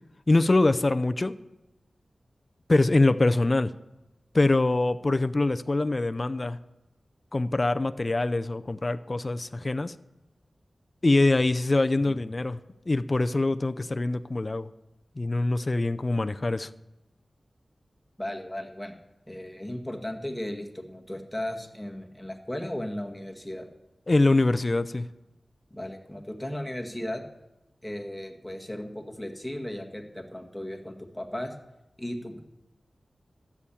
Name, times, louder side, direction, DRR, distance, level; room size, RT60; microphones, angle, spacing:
voice 1, 0.3-1.3 2.7-3.7 4.3-6.6 7.3-9.9 11.0-12.6 12.9-14.7 15.2-16.7 24.1-25.1, left 2 dB, 35° left, 10 dB, 0.5 m, -24 dB
voice 2, 18.2-19.0 19.3-23.7 25.7-27.2 27.8-31.5 32.0-32.4, left 1 dB, 5° left, 1 dB, 1.9 m, -36 dB
12.5 x 7.2 x 8.6 m, 0.98 s
wide cardioid pair, 80°, 0 cm